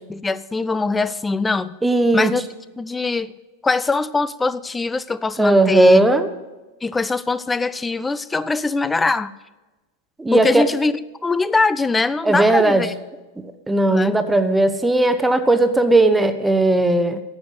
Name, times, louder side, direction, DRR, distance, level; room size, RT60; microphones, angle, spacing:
voice 1, 0.1-1.8 2.1-2.4 2.8-3.3 3.6-6.0 6.8-9.3 10.3-10.9 11.2-12.9 13.9-14.2, left 3 dB, 10° left, 17 dB, 0.4 m, -22 dB
voice 2, 1.8-2.3 5.4-6.3 10.2-10.6 12.2-12.9 13.7-17.2, right 2 dB, 5° right, 9 dB, 0.9 m, -16 dB
11.5 x 7.8 x 8.1 m, 1.2 s
figure-of-eight pair, 90°, 0 cm